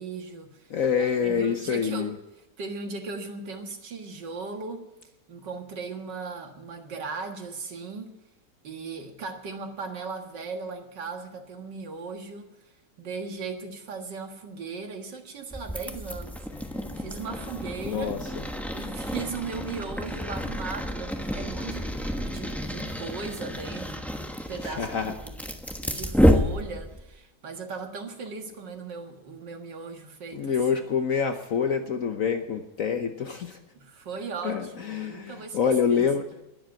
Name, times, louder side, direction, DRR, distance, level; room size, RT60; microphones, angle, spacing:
voice 1, 0.0-0.7 1.0-2.1 2.6-4.9 5.3-8.2 8.6-12.5 13.0-16.5 16.9-18.1 18.7-24.2 24.5-25.4 25.8-30.6 33.7-35.6 35.9-36.1, right 4 dB, 80° right, 4 dB, 2.3 m, -37 dB
voice 2, 0.7-2.1 17.8-18.4 24.6-25.1 30.3-33.6 34.4-36.2, left 6 dB, 55° left, 6 dB, 1.2 m, -26 dB
sound 1, 15.5-27.1, equal, ahead, 0.9 m, -29 dB
Acoustic guitar, 16.5-23.7, left 5 dB, 85° left, 2.0 m, -48 dB
20.0 x 7.9 x 5.9 m, 1.0 s
omnidirectional pair, 1.9 m